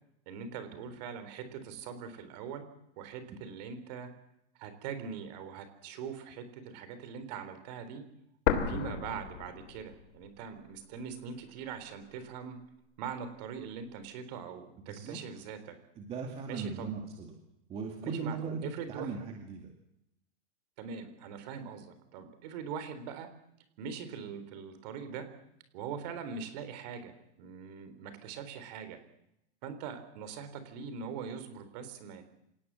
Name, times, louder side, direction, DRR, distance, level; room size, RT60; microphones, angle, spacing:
voice 1, 0.3-4.1 4.6-8.0 8.7-12.6 13.0-15.8 16.5-16.9 18.0-19.1 20.8-23.3 23.8-25.3 25.7-29.0 29.6-32.2, right 6 dB, 35° right, 10 dB, 3.8 m, -42 dB
sound 1, 8.5-10.4 10.7-10.8 11.5-12.5, left 8 dB, 65° left, 3.4 m, -33 dB
voice 2, 14.9-15.2 16.0-17.4 17.7-19.7, right 5 dB, 15° right, 2 dB, 2.2 m, -38 dB
26.5 x 18.5 x 7.6 m, 0.80 s
supercardioid pair, 175°, 34 cm